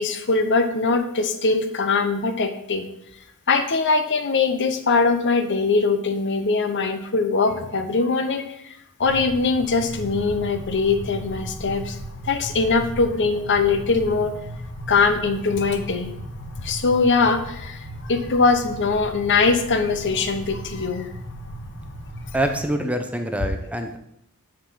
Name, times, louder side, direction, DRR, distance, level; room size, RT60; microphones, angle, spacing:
voice 1, 0.0-2.8 3.5-8.5 9.0-12.0 12.2-14.3 14.9-16.1 16.6-21.1, left 4 dB, 55° left, 8 dB, 0.9 m, -21 dB
sound 1, 9.0-22.6, equal, 70° left, 1.4 m, -36 dB
voice 2, 22.3-24.0, right 1 dB, 5° right, 5 dB, 0.7 m, -25 dB
6.6 x 6.3 x 5.7 m, 0.76 s
head